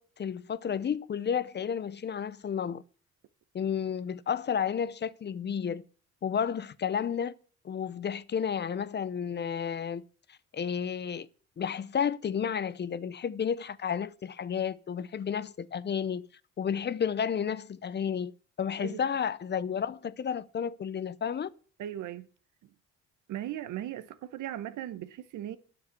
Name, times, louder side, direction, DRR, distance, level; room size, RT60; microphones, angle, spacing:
voice 1, 0.0-2.8 3.5-5.8 6.2-7.3 7.6-10.0 10.3-11.3 11.6-16.3 16.6-18.3 18.6-21.5, left 7 dB, 35° left, 0.6 m, -32 dB
voice 2, 21.8-22.3 23.3-25.6, right 12 dB, 80° right, 0.9 m, -38 dB
9.5 x 7.2 x 8.0 m
cardioid pair, 90°, 30 cm